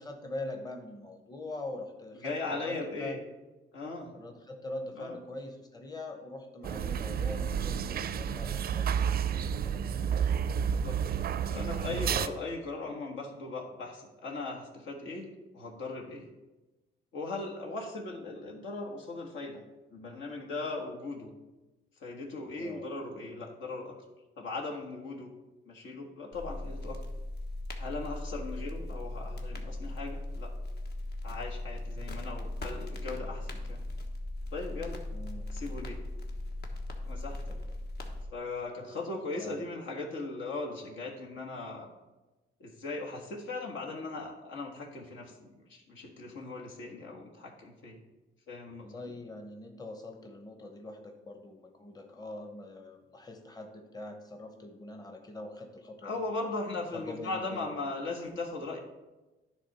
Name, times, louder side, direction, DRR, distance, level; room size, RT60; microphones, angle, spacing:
voice 1, 0.0-3.2 4.1-9.8 10.1-10.3 10.6-10.7 22.6-22.9 35.1-35.5 37.5-37.7 39.4-39.6 48.8-56.2 56.9-57.7, left 2 dB, 20° left, 4 dB, 1.0 m, -43 dB
voice 2, 2.2-3.2 3.7-4.2 4.9-5.2 10.5-11.2 11.5-16.3 17.1-19.6 19.9-21.3 22.0-23.9 24.4-25.3 25.6-27.0 27.8-30.5 31.2-33.8 34.5-35.0 35.5-36.0 37.0-37.4 38.3-41.9 42.6-48.0 48.5-49.1 56.0-58.8, left 3 dB, 75° left, 0 dB, 1.5 m, -38 dB
sound 1, 6.6-12.3, right 7 dB, 50° right, 0.4 m, -30 dB
sound 2, 26.3-38.2, left 1 dB, 55° left, 1.2 m, -38 dB
10.0 x 3.6 x 5.6 m, 1.1 s
cardioid pair, 90°, 20 cm